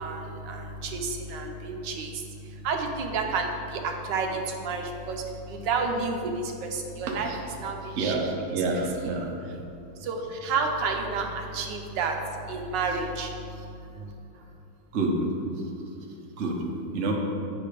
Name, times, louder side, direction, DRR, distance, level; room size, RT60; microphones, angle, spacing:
voice 1, 0.0-7.3 7.6-8.3 8.6-8.7 10.0-12.2 12.4-14.1, right 4 dB, 65° right, 3 dB, 1.3 m, -31 dB
voice 2, 7.9-9.3 14.9-15.1 16.4-16.6 16.9-17.2, right 3 dB, 50° right, 0 dB, 0.9 m, -28 dB
8.5 x 5.0 x 4.9 m, 2.7 s
omnidirectional pair, 2.3 m